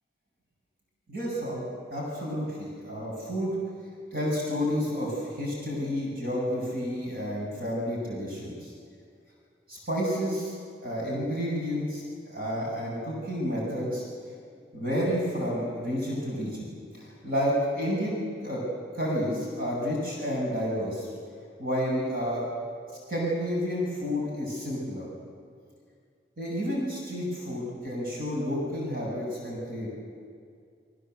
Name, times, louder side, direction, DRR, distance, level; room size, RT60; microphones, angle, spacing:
voice 1, 1.1-1.6 1.9-3.6 4.1-5.1 5.4-8.7 9.7-10.5 10.8-14.0 14.7-16.7 16.9-18.6 18.9-21.1 21.6-22.5 23.1-25.1 26.4-29.9, equal, 55° right, -3 dB, 7.6 m, -30 dB
28.0 x 23.0 x 8.1 m, 2.3 s
head